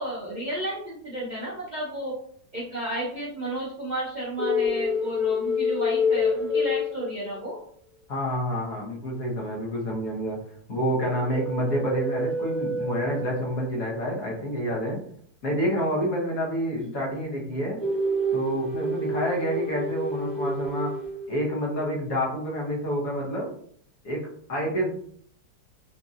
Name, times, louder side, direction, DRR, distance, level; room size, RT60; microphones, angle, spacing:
voice 1, 0.0-2.1 2.5-7.6 16.8-16.9, right 1 dB, 75° right, -5 dB, 0.4 m, -32 dB
sound 1, 4.4-7.6 11.1-13.7 17.8-21.6, left 2 dB, ahead, 0.4 m, -28 dB
voice 2, 8.1-10.4 10.7-15.0 15.4-17.8 18.3-20.9 21.3-23.5 24.0-24.9, equal, 60° left, -2 dB, 1.3 m, -28 dB
4.0 x 2.6 x 2.4 m, 0.62 s
omnidirectional pair, 1.9 m